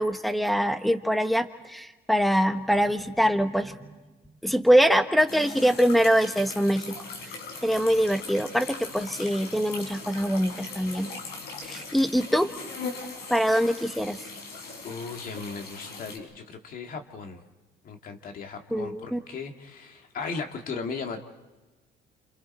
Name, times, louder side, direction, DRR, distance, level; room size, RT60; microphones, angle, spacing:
voice 1, 0.0-3.8 4.4-6.9 7.6-11.1 11.6-12.5 13.3-14.2 18.7-19.2, equal, ahead, 9 dB, 1.2 m, -23 dB
sound 1, 5.3-16.2, left 4 dB, 75° left, 4.9 m, -40 dB
voice 2, 14.8-17.4 17.8-21.2, left 4 dB, 55° left, 4 dB, 2.2 m, -37 dB
29.0 x 27.5 x 4.4 m, 1.2 s
cardioid pair, 110°, 17 cm